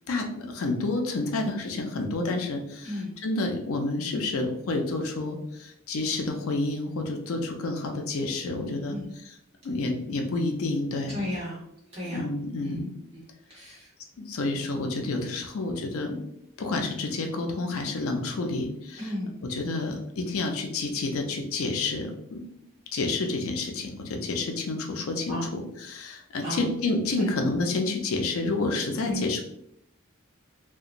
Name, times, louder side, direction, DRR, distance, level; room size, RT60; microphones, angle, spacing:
voice 1, 0.1-9.0 9.2-9.3 9.6-11.2 12.1-12.9 14.2-16.2 16.6-19.0 19.5-22.4 22.9-29.4, left 2 dB, 80° left, 3 dB, 0.5 m, -29 dB
voice 2, 2.8-3.2 8.9-9.1 11.1-11.6 11.9-12.3 12.6-12.8 13.1-13.2 13.5-13.9 19.0-19.3 25.3-25.6 26.4-26.8 27.2-27.3 29.1-29.2, left 1 dB, 30° right, -6 dB, 1.0 m, -34 dB
2.8 x 2.2 x 2.5 m, 0.77 s
head